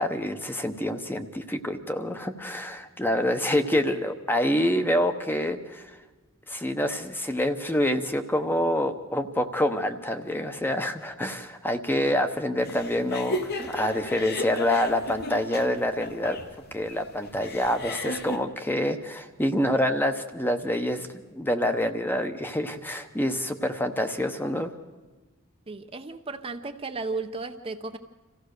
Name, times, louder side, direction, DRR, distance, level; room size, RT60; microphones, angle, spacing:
voice 1, 0.0-6.0 6.5-24.7, left 1 dB, 10° left, 7 dB, 1.0 m, -27 dB
sound 1, 12.6-18.4, left 2 dB, 50° left, 1.3 m, -34 dB
voice 2, 25.7-28.0, right 3 dB, 25° right, 6 dB, 0.7 m, -34 dB
26.5 x 15.5 x 6.6 m, 1.2 s
head